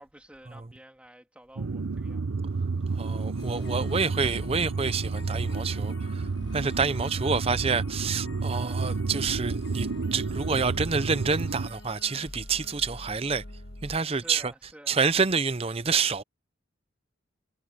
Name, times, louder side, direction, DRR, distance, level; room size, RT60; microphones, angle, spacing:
voice 1, 0.0-2.5 14.1-15.0, right 1 dB, 5° right, 3.3 m, -51 dB
sound 1, 1.6-11.7, right 4 dB, 85° right, 0.7 m, -31 dB
voice 2, 3.0-6.2 6.5-13.4 13.8-14.4 14.9-16.2, right 5 dB, 30° right, 0.6 m, -28 dB
sound 2, 3.4-14.0, left 1 dB, 55° left, 1.7 m, -45 dB
head